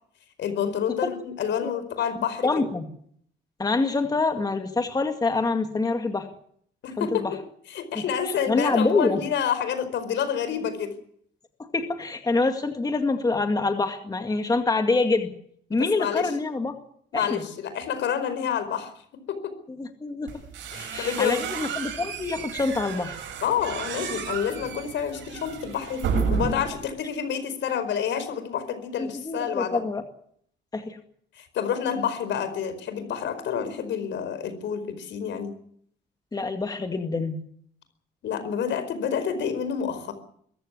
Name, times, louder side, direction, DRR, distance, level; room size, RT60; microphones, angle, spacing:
voice 1, 0.4-2.5 6.8-7.2 7.7-10.9 15.7-16.3 17.1-18.9 19.3-19.5 20.7-21.4 23.4-29.8 31.4-35.6 38.2-40.1, left 8 dB, 75° left, 11 dB, 4.8 m, -28 dB
voice 2, 2.4-2.9 3.6-6.3 7.0-7.3 8.0-9.2 11.7-15.3 15.7-16.8 17.1-17.4 19.8-20.3 20.9-23.2 29.0-30.0 30.7-31.0 36.3-37.4, left 3 dB, 20° left, 6 dB, 2.0 m, -26 dB
sound 1, 20.3-26.8, right 6 dB, 90° right, 7.6 m, -32 dB
22.5 x 15.0 x 9.5 m, 0.65 s
cardioid pair, 130°, 19 cm